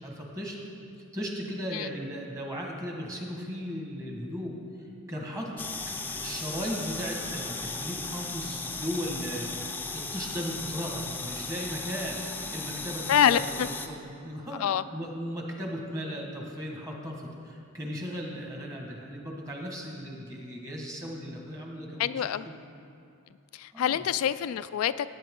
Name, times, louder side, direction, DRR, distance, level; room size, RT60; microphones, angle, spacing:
voice 1, 0.0-0.6 1.1-4.5 5.1-14.6 14.9-22.5 23.7-24.0, equal, 15° right, 1.5 m, -36 dB
sound 1, 5.6-13.9, left 4 dB, 10° left, 0.5 m, -36 dB
voice 2, 13.1-13.7 14.6-14.8 22.0-22.5 23.5-25.1, left 9 dB, 90° left, 0.3 m, -26 dB
17.0 x 8.8 x 3.7 m
head